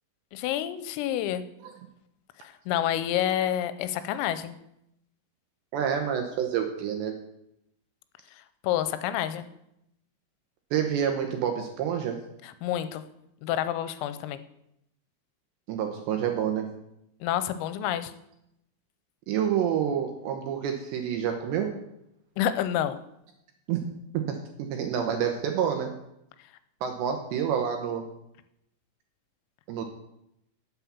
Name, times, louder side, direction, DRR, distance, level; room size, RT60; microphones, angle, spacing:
voice 1, 0.3-1.4 2.4-4.5 8.6-9.5 12.4-13.0 13.4-14.4 17.2-18.1 22.4-23.0, left 11 dB, 85° left, 12 dB, 3.4 m, -28 dB
voice 2, 5.7-7.1 10.7-12.2 15.7-16.7 19.3-21.7 23.7-23.8 24.1-25.9 26.8-28.1 29.7-29.9, right 8 dB, 75° right, 4 dB, 2.7 m, -28 dB
9.6 x 8.1 x 7.2 m, 0.81 s
omnidirectional pair, 5.9 m